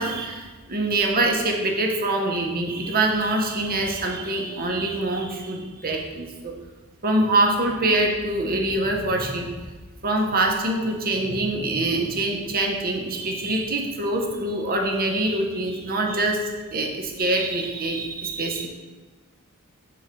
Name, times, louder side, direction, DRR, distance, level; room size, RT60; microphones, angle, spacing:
voice 1, 0.0-6.5 7.0-9.5 10.0-18.7, right 2 dB, 40° right, 2 dB, 0.9 m, -24 dB
7.0 x 3.9 x 5.1 m, 1.3 s
head